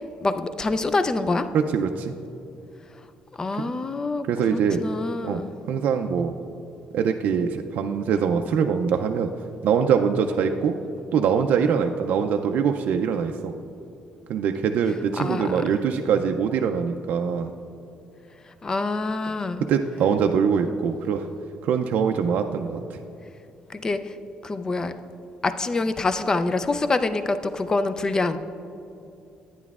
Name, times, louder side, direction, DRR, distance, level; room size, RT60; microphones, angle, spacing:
voice 1, 0.2-1.5 3.4-5.5 15.2-15.6 18.4-19.7 23.7-24.2 24.4-24.9 25.4-28.4, left 3 dB, 25° left, 10 dB, 0.4 m, -26 dB
voice 2, 1.5-2.1 3.6-3.7 4.3-4.8 5.2-5.4 5.7-6.3 6.9-9.3 9.6-10.7 11.1-13.5 14.3-17.5 19.7-21.3 21.6-23.0, right 7 dB, 65° right, 5 dB, 0.4 m, -23 dB
11.0 x 9.2 x 2.4 m, 2.7 s
cardioid pair, 120°, 3 cm